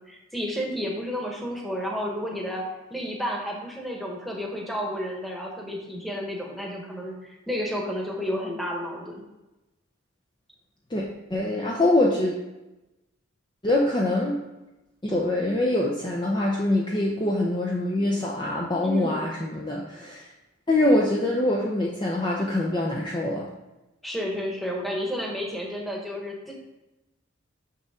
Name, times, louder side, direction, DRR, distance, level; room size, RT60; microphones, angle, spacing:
voice 1, 0.0-2.6 2.9-9.2 18.8-19.3 24.0-26.5, equal, ahead, -2 dB, 1.2 m, -31 dB
voice 2, 11.3-12.3 13.6-14.4 15.0-20.3 20.7-23.5, left 1 dB, 20° left, -2 dB, 0.6 m, -24 dB
6.7 x 6.0 x 3.7 m, 0.99 s
head